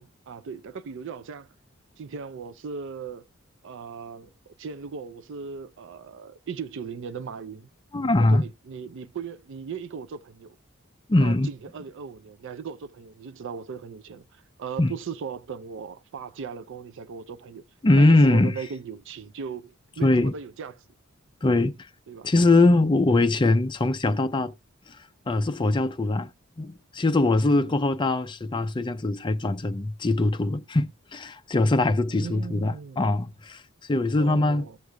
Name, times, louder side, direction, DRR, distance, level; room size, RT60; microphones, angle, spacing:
voice 1, 0.0-1.5 2.0-3.3 3.6-4.3 4.6-7.7 8.2-10.5 11.2-17.6 17.9-20.7 22.1-22.3 27.5-27.7 32.1-33.0 34.2-34.8, right 6 dB, 60° right, 0.4 m, -38 dB
voice 2, 7.9-8.4 11.1-11.5 14.8-14.9 17.8-18.5 20.0-20.3 21.4-21.7 22.2-24.5 24.9-25.0 25.3-26.3 26.6-33.6 33.9-34.7, left 2 dB, 25° left, 0.5 m, -22 dB
18.5 x 6.5 x 2.2 m
head